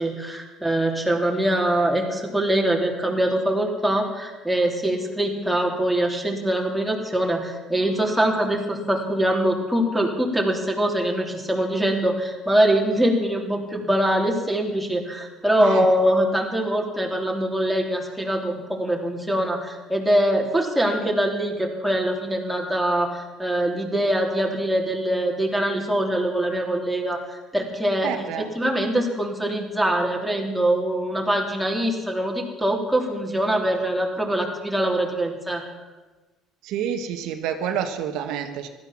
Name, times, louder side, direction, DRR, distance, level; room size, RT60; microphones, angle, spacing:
voice 1, 0.0-28.1 28.5-35.6, right 1 dB, 5° right, 0 dB, 3.2 m, -23 dB
voice 2, 28.0-28.5 36.6-38.7, right 8 dB, 75° right, 6 dB, 1.3 m, -28 dB
15.5 x 12.5 x 7.4 m, 1.2 s
cardioid pair, 100°, 0 cm